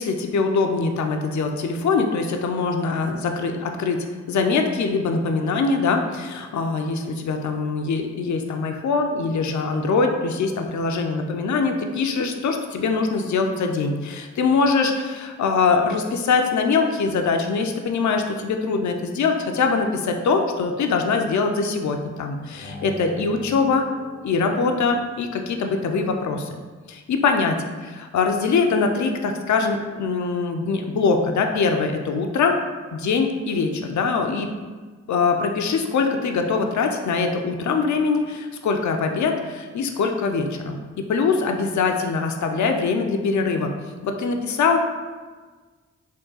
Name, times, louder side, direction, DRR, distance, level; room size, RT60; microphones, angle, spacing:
voice 1, 0.0-23.8 24.2-26.6 26.9-32.5 32.9-34.5 35.1-43.7 44.0-44.8, left 4 dB, 70° left, 4 dB, 0.5 m, -23 dB
sound 1, 22.5-25.2, equal, 90° left, 0.9 m, -40 dB
3.7 x 2.2 x 3.9 m, 1.4 s
cardioid pair, 40°, 30 cm